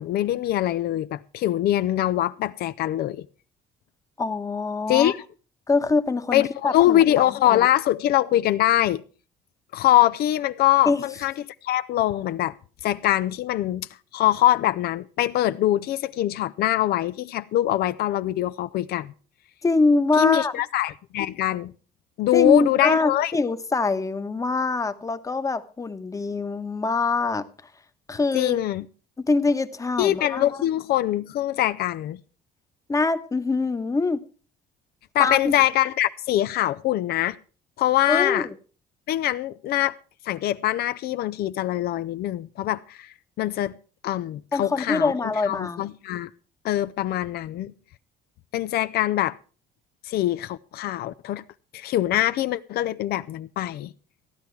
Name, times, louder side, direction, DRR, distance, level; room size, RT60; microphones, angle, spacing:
voice 1, 0.0-3.3 4.9-5.2 6.3-9.0 9.7-11.3 11.6-12.6 12.8-13.9 14.1-19.1 20.2-21.7 22.2-23.3 28.3-28.9 30.0-32.2 35.1-37.4 37.8-38.5 39.1-40.0 40.2-43.7 44.0-45.1 45.4-46.3 46.6-47.7 48.5-49.4 50.0-51.4 51.7-53.9, left 13 dB, 70° left, 0.6 m, -23 dB
voice 2, 4.2-5.1 5.7-7.7 10.9-11.0 19.6-20.5 22.3-27.5 28.1-28.6 29.2-30.4 32.9-34.2 35.2-35.5 38.1-38.5 44.5-45.8, left 3 dB, 20° left, 1.0 m, -24 dB
15.5 x 10.5 x 4.6 m
cardioid pair, 110°, 17 cm